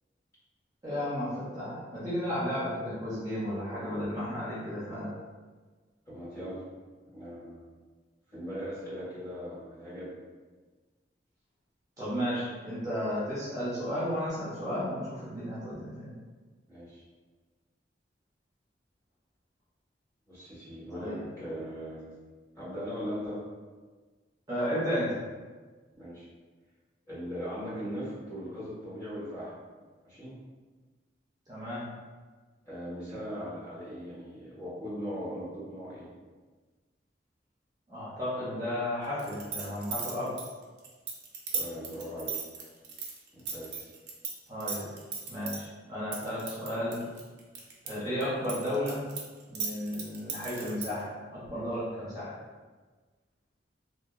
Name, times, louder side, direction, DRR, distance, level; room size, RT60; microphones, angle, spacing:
voice 1, 0.8-5.1 12.0-16.1 20.9-21.3 24.5-25.2 31.5-31.9 37.9-40.3 44.5-44.9 45.3-47.0 47.8-49.0 49.5-52.4, equal, 20° right, -10 dB, 0.6 m, -33 dB
voice 2, 6.1-6.6 7.1-7.8 8.3-10.1 16.7-17.0 20.3-22.2 22.5-23.4 25.9-26.3 27.1-29.5 30.0-30.3 32.6-36.1 41.5-42.4 43.3-43.9, equal, 20° left, -11 dB, 1.4 m, -39 dB
sound 1, 39.2-44.3 44.6-45.6 46.1-47.9 48.2-51.0, right 6 dB, 70° right, 0.5 m, -35 dB
2.8 x 2.2 x 2.3 m, 1.4 s
head